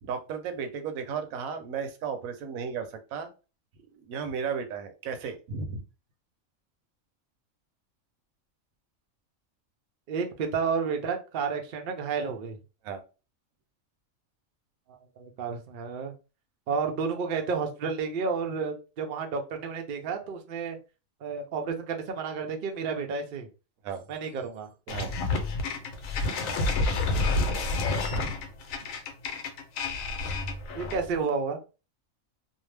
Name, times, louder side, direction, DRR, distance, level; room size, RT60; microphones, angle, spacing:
voice 1, 0.0-3.3 4.0-5.8 12.8-13.0 23.8-24.0 24.9-25.2 28.1-28.4, right 6 dB, 80° right, 7 dB, 1.0 m, -34 dB
voice 2, 10.1-12.6 14.9-16.1 16.7-20.8 21.2-23.5 24.1-24.7 26.9-27.3 30.7-31.6, right 5 dB, 65° right, 4 dB, 0.5 m, -31 dB
sound 1, 24.9-31.1, left 2 dB, 75° left, 1.0 m, -29 dB
2.6 x 2.1 x 3.2 m, 0.32 s
omnidirectional pair, 1.4 m